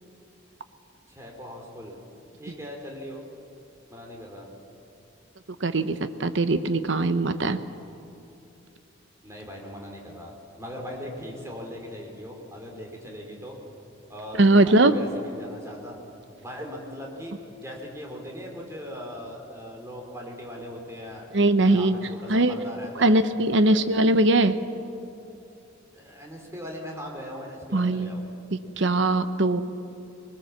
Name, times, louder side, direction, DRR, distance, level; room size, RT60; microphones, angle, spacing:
voice 1, 1.1-2.0 2.4-3.2 3.9-4.5 9.2-10.3 10.6-13.6 14.1-16.0 16.4-21.2 21.7-23.2 23.6-23.8 25.9-28.2, equal, 15° right, 0 dB, 3.4 m, -39 dB
voice 2, 5.6-7.6 14.4-15.0 21.3-22.0 22.3-22.6 23.0-24.6 27.7-28.1 28.5-29.6, right 2 dB, 65° right, 11 dB, 0.9 m, -21 dB
21.0 x 19.5 x 7.3 m, 2.8 s
head